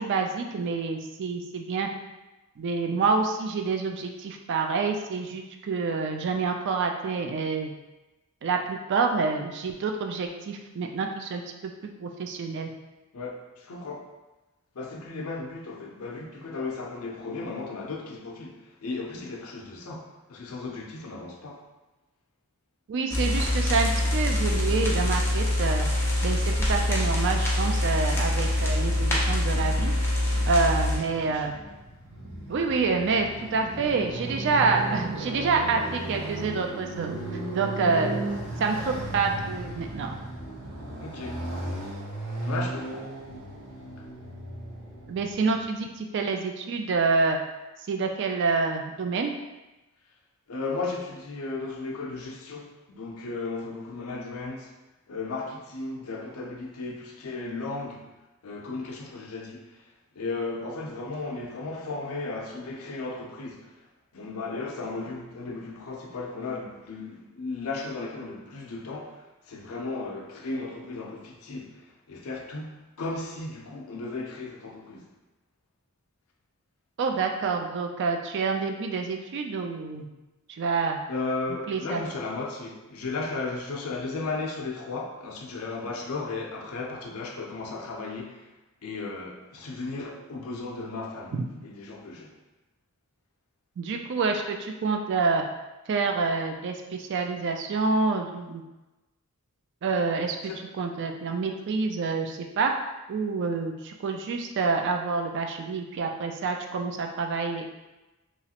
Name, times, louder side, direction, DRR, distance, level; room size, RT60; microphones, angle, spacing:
voice 1, 0.0-1.9 2.6-7.7 8.4-12.7 22.9-25.9 26.2-29.9 30.5-31.6 32.5-37.2 37.5-38.1 38.6-40.2 45.1-47.4 47.9-49.3 77.0-80.1 80.5-81.0 81.7-82.0 91.3-91.4 93.8-95.4 95.9-98.6 99.8-100.4 100.7-102.7 103.1-107.7, right 4 dB, 50° right, 0.3 m, -27 dB
voice 2, 13.1-14.1 14.7-21.7 30.9-31.5 41.0-41.4 42.4-43.2 50.5-54.7 55.1-58.1 58.4-63.8 64.1-75.1 81.1-88.5 88.8-92.3 100.4-100.7, left 3 dB, 70° left, 0.5 m, -35 dB
sound 1, 23.1-31.0, left 1 dB, 10° left, 0.5 m, -25 dB
Motorcycle, 29.7-45.7, right 2 dB, 75° right, 0.9 m, -36 dB
3.0 x 2.3 x 2.8 m
head